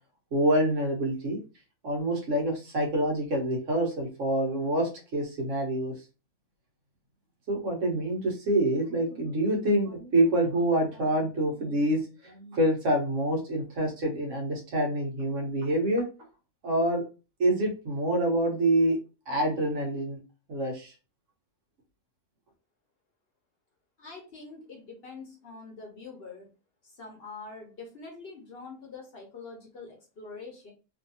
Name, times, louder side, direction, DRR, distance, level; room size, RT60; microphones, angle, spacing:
voice 1, 0.3-1.4 1.8-5.9 7.5-16.0 16.6-17.0 17.4-19.0 19.3-20.2 20.5-20.9, right 1 dB, 65° right, 1 dB, 1.4 m, -26 dB
voice 2, 24.0-26.5 26.8-30.7, left 4 dB, 50° left, 1 dB, 1.0 m, -44 dB
3.1 x 2.6 x 2.7 m, 0.31 s
omnidirectional pair, 1.4 m